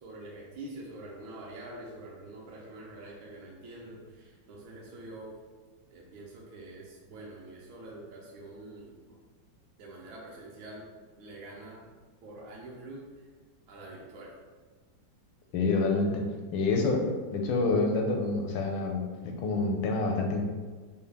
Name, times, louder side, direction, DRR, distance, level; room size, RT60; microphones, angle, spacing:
voice 1, 0.0-5.4 5.9-9.2 9.8-10.9 11.2-11.8 12.2-13.0 13.7-14.3, right 2 dB, 75° right, -3 dB, 1.4 m, -45 dB
voice 2, 15.5-16.2 16.5-17.0 17.3-20.5, left 3 dB, 85° left, 2 dB, 1.5 m, -27 dB
5.3 x 2.3 x 3.3 m, 1.4 s
omnidirectional pair, 2.2 m